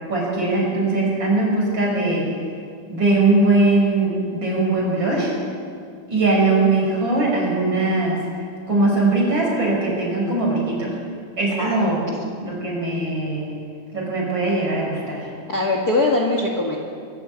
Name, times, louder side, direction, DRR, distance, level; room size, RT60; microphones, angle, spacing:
voice 1, 0.1-2.3 2.9-5.3 6.1-8.2 8.7-10.9 11.4-12.0 12.4-13.5 13.9-15.3, right 2 dB, 35° right, -3 dB, 6.6 m, -20 dB
voice 2, 11.6-12.0 15.5-16.8, left 2 dB, 35° left, 0 dB, 1.9 m, -21 dB
25.0 x 13.0 x 8.7 m, 2.3 s
omnidirectional pair, 3.6 m